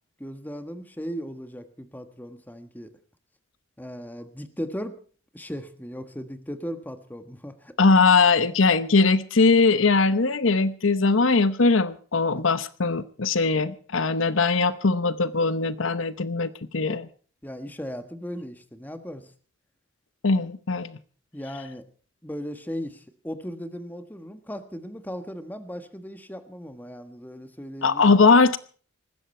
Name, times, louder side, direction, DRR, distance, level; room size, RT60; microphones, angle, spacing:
voice 1, 0.2-2.9 3.8-5.0 5.3-7.7 17.4-19.3 21.3-21.9 22.2-28.2, equal, 10° left, 8 dB, 1.4 m, -37 dB
voice 2, 7.8-17.1 20.2-21.0 27.8-28.6, left 4 dB, 80° left, 14 dB, 0.9 m, -20 dB
19.5 x 15.5 x 4.4 m, 0.43 s
head